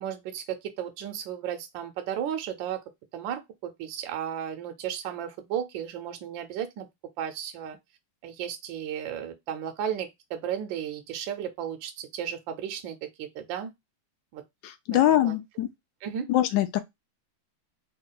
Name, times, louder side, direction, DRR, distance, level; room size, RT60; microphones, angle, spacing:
voice 1, 0.0-2.8 3.1-6.9 7.2-7.8 8.2-13.7 14.3-14.4 14.9-15.4 16.0-16.3, right 9 dB, 70° right, 1.2 m, -34 dB
voice 2, 14.6-15.7 16.3-16.8, left 13 dB, 75° left, 1.1 m, -23 dB
3.6 x 2.3 x 3.6 m
omnidirectional pair, 2.4 m